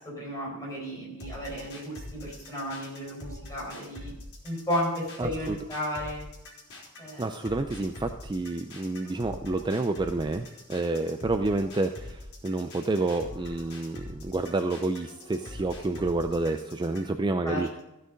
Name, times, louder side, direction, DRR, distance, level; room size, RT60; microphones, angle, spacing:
voice 1, 0.0-4.1 4.4-6.3 7.0-7.2 17.4-17.8, equal, 15° left, -3 dB, 4.8 m, -33 dB
sound 1, 1.2-17.2, left 1 dB, 70° left, 3.9 m, -44 dB
voice 2, 5.2-5.6 7.2-17.7, right 2 dB, 20° right, 7 dB, 0.4 m, -29 dB
14.5 x 6.5 x 5.1 m, 0.93 s
head